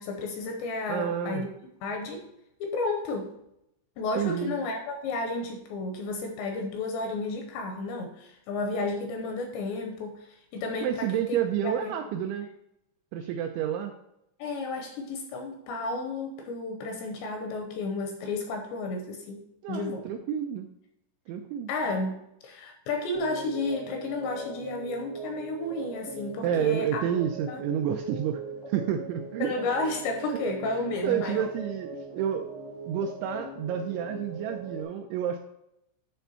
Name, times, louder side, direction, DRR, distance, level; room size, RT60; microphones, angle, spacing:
voice 1, 0.0-1.5 1.8-2.2 2.6-3.3 4.0-11.9 14.4-20.1 21.7-27.1 27.5-27.6 29.4-31.5, left 3 dB, 80° left, 4 dB, 2.7 m, -32 dB
voice 2, 0.9-1.4 4.2-4.5 10.8-12.5 13.1-13.9 19.6-20.7 21.3-21.7 26.4-28.4 28.7-29.5 31.0-32.5 32.9-35.4, right 9 dB, 85° right, 5 dB, 2.7 m, -29 dB
sound 1, 23.1-34.8, right 3 dB, 60° left, 0.9 m, -40 dB
10.5 x 3.4 x 5.5 m, 0.81 s
omnidirectional pair, 5.7 m